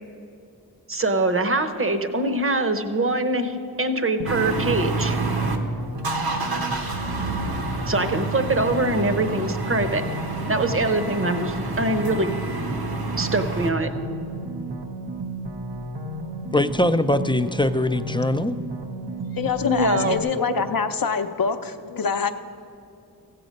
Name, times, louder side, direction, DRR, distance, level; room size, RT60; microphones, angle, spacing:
voice 1, 0.9-5.2 7.9-10.0 10.5-12.4 13.2-13.9 19.6-20.2, right 2 dB, 35° right, 9 dB, 0.8 m, -23 dB
sound 1, 4.2-20.2, right 2 dB, 85° right, 0.9 m, -33 dB
sound 2, 4.3-5.6 6.0-13.7, right 2 dB, 65° right, 1.1 m, -29 dB
voice 2, 16.5-18.6, left 1 dB, 15° left, 11 dB, 0.3 m, -22 dB
voice 3, 19.3-22.3, left 6 dB, 60° left, 8 dB, 0.7 m, -25 dB
15.0 x 7.7 x 5.2 m, 2.6 s
wide cardioid pair, 65°, 39 cm